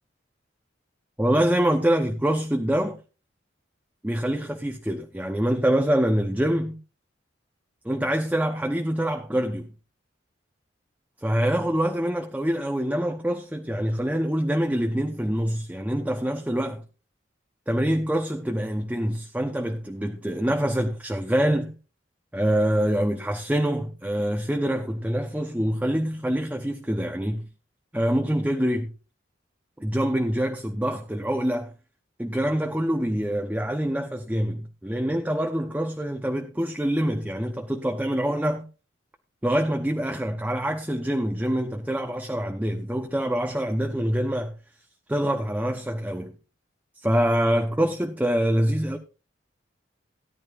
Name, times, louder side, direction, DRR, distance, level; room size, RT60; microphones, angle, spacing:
voice 1, 1.2-3.0 4.0-6.8 7.8-9.7 11.2-16.8 17.7-21.8 22.3-27.5 27.9-28.9 29.8-31.7 32.2-38.7 39.4-44.5 45.1-46.3 47.0-49.0, equal, 10° right, 0.8 m, -25 dB
17.5 x 10.5 x 2.5 m
head